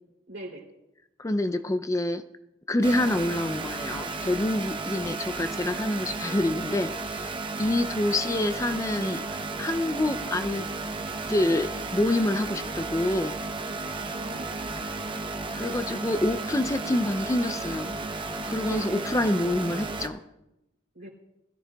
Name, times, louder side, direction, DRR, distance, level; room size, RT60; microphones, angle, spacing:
voice 1, 0.3-0.7 13.9-14.9 18.6-19.1 20.9-21.1, right 1 dB, 70° right, 0 dB, 3.1 m, -40 dB
voice 2, 1.2-2.2 2.7-7.3 7.6-9.2 9.6-10.7 11.3-13.4 15.5-18.0 18.4-20.2, left 1 dB, 15° left, 10 dB, 0.4 m, -27 dB
sound 1, 2.8-20.1, right 3 dB, 25° right, 0.8 m, -34 dB
20.5 x 13.0 x 2.3 m, 0.91 s
head